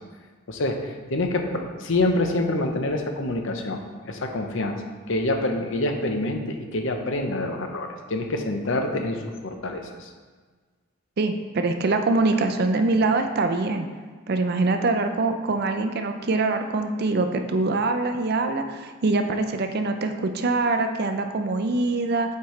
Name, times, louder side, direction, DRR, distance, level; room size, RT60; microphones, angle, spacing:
voice 1, 0.5-3.8 4.1-4.8 5.1-10.1, left 2 dB, 60° left, 4 dB, 0.7 m, -26 dB
voice 2, 11.2-13.9 14.3-22.4, right 3 dB, 50° right, 6 dB, 0.5 m, -24 dB
8.4 x 4.6 x 3.2 m, 1.5 s
head